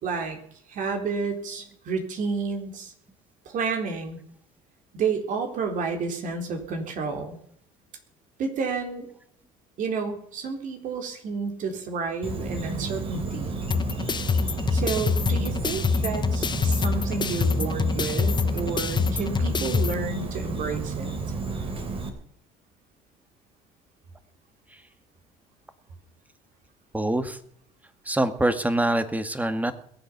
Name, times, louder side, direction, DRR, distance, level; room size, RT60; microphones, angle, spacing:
voice 1, 0.0-0.4 0.7-2.9 3.5-4.2 4.9-7.4 8.4-9.1 9.8-13.6 14.7-21.1, right 5 dB, 55° right, 4 dB, 3.8 m, -30 dB
Insect, 12.2-22.1, right 3 dB, 35° right, 3.2 m, -32 dB
sound 1, 13.7-19.9, left 5 dB, 30° left, 1.2 m, -25 dB
voice 2, 26.9-27.4 28.1-29.7, right 1 dB, 10° right, 11 dB, 1.9 m, -24 dB
21.5 x 8.0 x 6.1 m, 0.64 s
hypercardioid pair, 75°, 16 cm